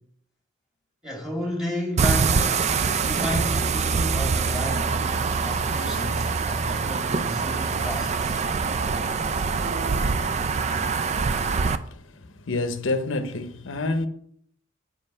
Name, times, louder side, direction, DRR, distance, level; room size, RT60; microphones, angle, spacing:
voice 1, 1.0-5.0 5.4-8.4, equal, 5° right, 2.4 m, -32 dB
sound 1, 2.0-11.8, right 5 dB, 35° right, 0.4 m, -24 dB
voice 2, 11.4-14.1, left 2 dB, 70° left, 0.7 m, -29 dB
7.6 x 5.2 x 5.4 m
head